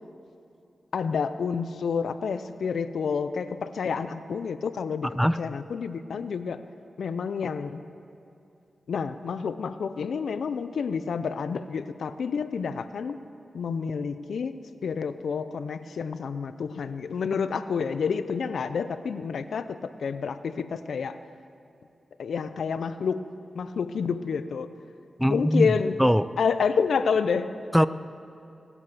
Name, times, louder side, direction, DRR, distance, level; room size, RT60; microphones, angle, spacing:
voice 1, 0.9-6.6 7.0-7.9 8.9-13.2 13.5-21.2 22.2-23.3 23.5-24.7 25.3-25.9 26.4-27.6, left 6 dB, 90° left, 12 dB, 0.5 m, -29 dB
voice 2, 25.2-25.7 26.0-26.3 27.7-27.9, equal, ahead, 15 dB, 0.4 m, -21 dB
18.0 x 8.6 x 6.8 m, 2.7 s
cardioid pair, 60°, 0 cm